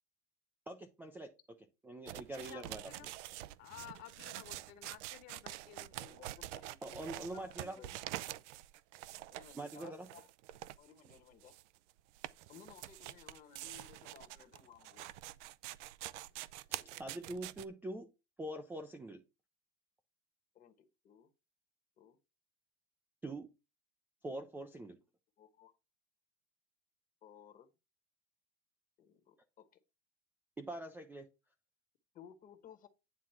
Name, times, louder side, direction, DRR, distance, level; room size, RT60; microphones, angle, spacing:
voice 1, 0.7-1.3 1.8-2.8 6.8-7.8 9.6-10.1 16.7-18.1 18.4-19.2 23.2-23.5 24.2-25.0 30.6-31.3, right 1 dB, 5° right, 0.3 m, -44 dB
sound 1, 2.1-17.6, right 15 dB, 90° right, 0.6 m, -47 dB
voice 2, 2.5-3.1 3.6-6.1, left 12 dB, 50° left, 1.5 m, -53 dB
voice 3, 6.0-7.9 9.3-10.3 10.8-11.5 12.5-15.2 20.5-21.3 22.0-22.2 25.4-25.7 27.2-27.7 29.0-29.7 32.1-32.9, left 8 dB, 25° left, 1.1 m, -58 dB
9.5 x 3.7 x 5.7 m
cardioid pair, 165°, 34 cm